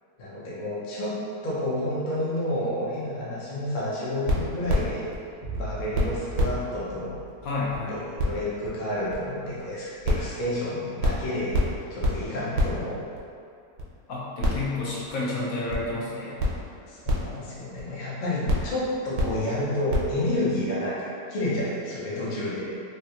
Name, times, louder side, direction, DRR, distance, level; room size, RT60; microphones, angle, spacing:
voice 1, 0.2-1.2 1.4-5.0 5.5-7.1 7.9-11.6 11.9-13.0 16.9-22.7, left 1 dB, 55° left, -7 dB, 0.5 m, -30 dB
sound 1, 4.3-5.2 5.5-5.6 5.9-6.0 6.4-6.6 6.8-6.9 7.3-7.4 7.7-7.8 8.2-8.3 8.6-8.7 9.1-9.2 9.6-9.7 10.0-10.3 10.5-10.6 11.0-11.2 11.5-11.7 12.0-12.2 12.5-12.7 13.2-13.3 13.8-13.9 14.4-14.7 15.1-15.2 15.7-15.8 16.4-16.5 17.1-17.3 17.8-17.9 18.5-18.7 19.2-19.3 19.9-20.0, left 1 dB, 80° right, 1.2 m, -24 dB
sound 2, 5.4-12.8, equal, 50° right, 0.5 m, -42 dB
voice 2, 7.4-8.0 14.1-16.4, left 2 dB, 70° left, -6 dB, 1.0 m, -30 dB
3.3 x 2.4 x 2.8 m, 2.5 s
omnidirectional pair, 1.6 m